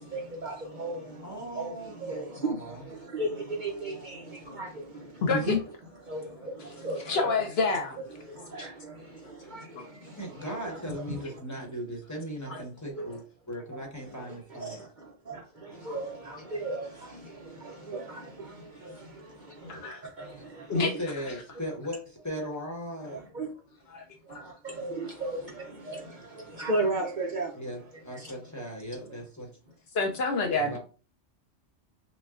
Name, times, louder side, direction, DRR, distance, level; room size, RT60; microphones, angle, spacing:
voice 1, 0.0-5.6 6.0-7.4 8.2-11.4 12.5-12.6 12.9-13.2 13.8-20.9 23.0-23.5 24.2-27.6 28.1-28.3, right 2 dB, 50° right, 0.6 m, -36 dB
voice 2, 1.2-2.8 10.2-14.9 19.0-19.1 20.4-20.5 20.7-23.2 27.5-27.8 28.0-29.5 30.5-30.8, equal, 15° left, 1.0 m, -38 dB
voice 3, 5.2-5.5 7.1-8.0 8.6-8.7 9.8-9.9 19.6-20.0 20.7-20.9 23.9-24.0 24.3-24.4 29.9-30.8, left 3 dB, 65° left, 0.8 m, -28 dB
5.8 x 2.2 x 2.4 m
omnidirectional pair, 1.2 m